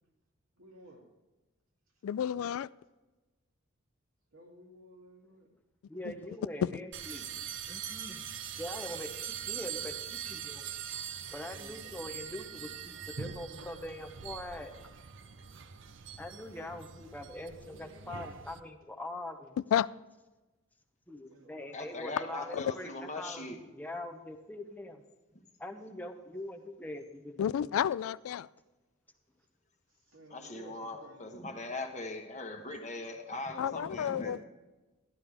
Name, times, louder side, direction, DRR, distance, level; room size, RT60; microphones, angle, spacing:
voice 1, 0.5-1.0 4.3-5.5 5.9-6.2 11.5-12.0 16.1-16.2 21.3-21.8 22.1-22.5 29.9-31.3, right 1 dB, 90° right, -2 dB, 2.7 m, -55 dB
voice 2, 2.0-2.7 6.0-6.1 6.6-6.7 19.7-19.9 22.5-22.6 27.4-28.5 33.6-34.4, left 9 dB, 80° left, 17 dB, 0.3 m, -31 dB
voice 3, 5.9-7.3 7.7-8.2 8.6-10.7 11.3-14.7 16.2-19.6 21.1-23.5 23.7-25.0 25.6-27.7, left 1 dB, 10° left, 5 dB, 0.7 m, -43 dB
sound 1, 6.9-18.6, right 8 dB, 60° right, 0.6 m, -42 dB
voice 4, 21.7-23.6 30.3-34.4, left 2 dB, 35° left, 4 dB, 1.2 m, -40 dB
12.5 x 11.5 x 3.4 m, 1.2 s
head